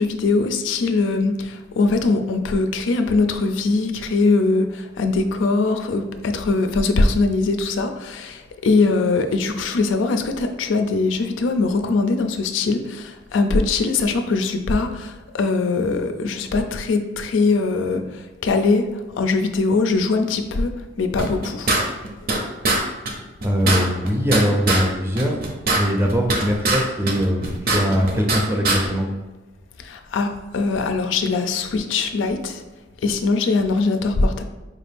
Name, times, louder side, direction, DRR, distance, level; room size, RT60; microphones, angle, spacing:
voice 1, 0.0-21.8 29.8-32.6 33.0-34.4, left 3 dB, 90° left, 6 dB, 0.4 m, -21 dB
sound 1, 21.2-22.4 22.6-22.8 23.1-23.2 23.4-24.8 25.2-26.8 27.1-28.4 28.6-28.8, right 2 dB, 50° right, 0.7 m, -21 dB
voice 2, 23.4-25.4 25.7-29.1, equal, 15° right, 1 dB, 0.5 m, -21 dB
4.5 x 2.5 x 3.4 m, 1.1 s
head